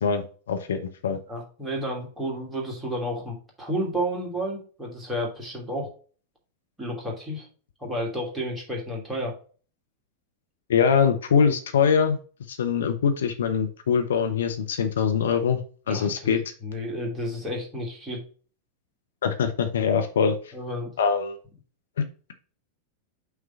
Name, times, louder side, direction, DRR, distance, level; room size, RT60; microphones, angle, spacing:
voice 1, 0.0-1.2 10.7-12.2 12.5-15.6 15.9-16.4 19.2-20.4 21.0-21.4, left 6 dB, 65° left, 7 dB, 0.8 m, -23 dB
voice 2, 1.3-5.9 6.8-7.5 7.8-9.4 15.9-16.3 16.6-18.2 20.5-20.9, equal, 10° right, -2 dB, 2.7 m, -31 dB
5.8 x 3.7 x 5.6 m, 0.39 s
figure-of-eight pair, 90°, 0 cm